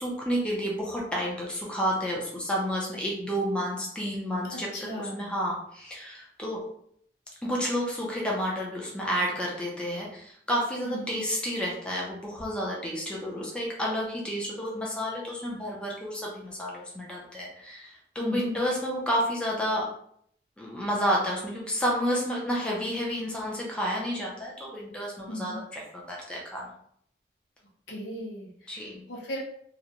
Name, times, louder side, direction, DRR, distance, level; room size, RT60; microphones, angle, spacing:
voice 1, 0.0-4.7 5.1-6.6 7.4-19.8 20.6-25.8 26.1-26.6 28.7-29.0, equal, 5° left, -4 dB, 0.5 m, -30 dB
voice 2, 4.4-5.3 10.8-11.2 18.2-18.6 25.3-25.6 27.9-29.4, equal, 80° left, -3 dB, 0.8 m, -37 dB
2.5 x 2.1 x 2.8 m, 0.66 s
head